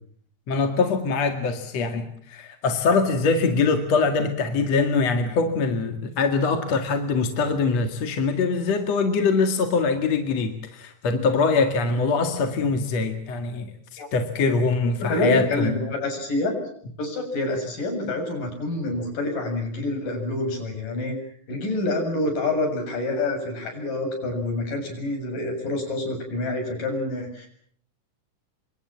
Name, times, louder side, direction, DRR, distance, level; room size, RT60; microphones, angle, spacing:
voice 1, 0.5-13.7 14.1-15.7, left 4 dB, 55° left, 6 dB, 3.0 m, -23 dB
voice 2, 15.0-16.5 17.0-21.2 21.5-27.5, left 2 dB, 75° left, 5 dB, 8.8 m, -27 dB
28.0 x 25.0 x 7.4 m, 0.63 s
omnidirectional pair, 3.8 m